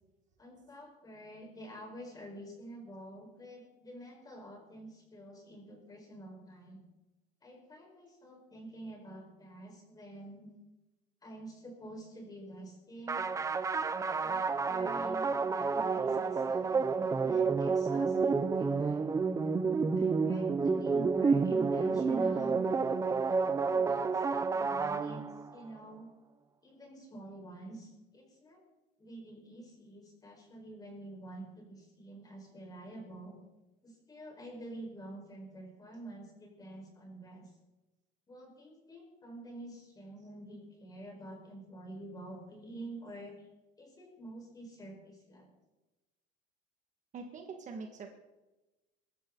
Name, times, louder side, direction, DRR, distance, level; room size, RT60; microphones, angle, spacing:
voice 1, 0.4-6.8 7.4-10.5 11.2-13.3 14.2-19.1 20.0-22.6 23.7-25.2 25.5-26.1 26.6-28.6 29.0-33.4 33.8-37.5 38.3-43.4 43.8-45.5, right 1 dB, 20° left, 1 dB, 4.9 m, -48 dB
sound 1, 13.1-25.6, right 4 dB, 15° right, 0.6 m, -30 dB
voice 2, 47.1-48.2, right 4 dB, 40° right, 3 dB, 1.8 m, -44 dB
23.5 x 13.0 x 4.0 m, 1.1 s
cardioid pair, 150°, 20 cm